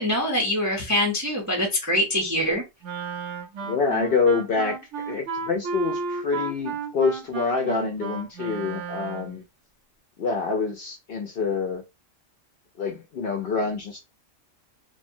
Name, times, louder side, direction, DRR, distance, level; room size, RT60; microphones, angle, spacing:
voice 1, 0.0-2.6, left 1 dB, 20° right, 0.4 m, -24 dB
Wind instrument woodwind instrument, 2.8-9.4, right 5 dB, 70° right, 0.9 m, -33 dB
voice 2, 3.6-4.8 5.1-9.4 10.2-11.8 12.8-14.0, left 4 dB, 60° left, 0.6 m, -26 dB
3.1 x 2.1 x 2.6 m
omnidirectional pair, 1.3 m